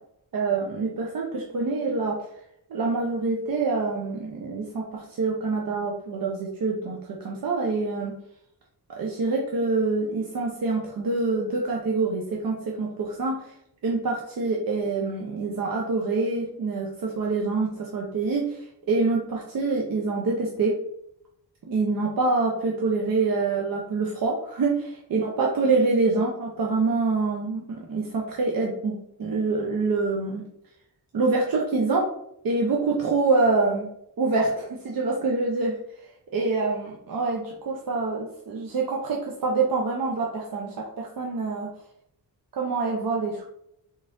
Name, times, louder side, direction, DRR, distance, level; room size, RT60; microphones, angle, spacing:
voice 1, 0.3-2.2 2.7-8.1 9.0-13.4 13.8-20.7 21.7-30.4 31.1-32.0 32.4-33.9 34.2-34.5 34.8-35.7 36.3-41.7 42.5-43.5, right 3 dB, 55° right, -1 dB, 0.7 m, -26 dB
3.9 x 3.0 x 2.6 m, 0.76 s
supercardioid pair, 50°, 42 cm